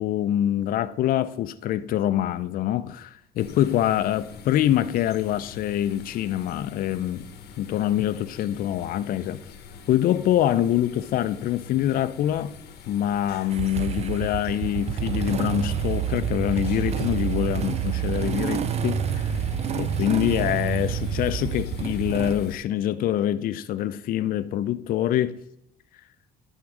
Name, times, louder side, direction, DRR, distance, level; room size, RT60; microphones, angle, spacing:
voice 1, 0.0-7.2 7.6-9.4 9.9-12.5 12.9-19.3 19.8-25.4, left 12 dB, 60° left, 0.4 m, -25 dB
sound 1, 3.4-22.6, left 7 dB, 75° left, 0.8 m, -43 dB
Motorcycle / Engine starting, 13.5-22.4, right 9 dB, 40° right, 0.4 m, -28 dB
10.5 x 3.6 x 4.8 m
cardioid pair, 110°, 17 cm